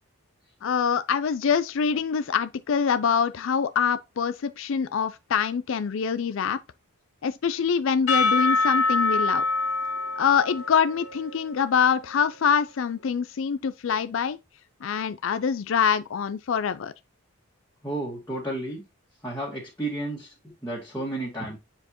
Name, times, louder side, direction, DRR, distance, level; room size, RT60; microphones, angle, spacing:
voice 1, 0.6-6.6 7.2-9.4 10.2-14.4 14.8-16.9, left 7 dB, 60° left, 0.4 m, -25 dB
Percussion / Church bell, 8.1-12.4, left 3 dB, 85° left, 2.0 m, -26 dB
voice 2, 17.8-18.8 19.2-21.6, right 1 dB, 10° left, 1.9 m, -32 dB
7.7 x 4.4 x 2.9 m
head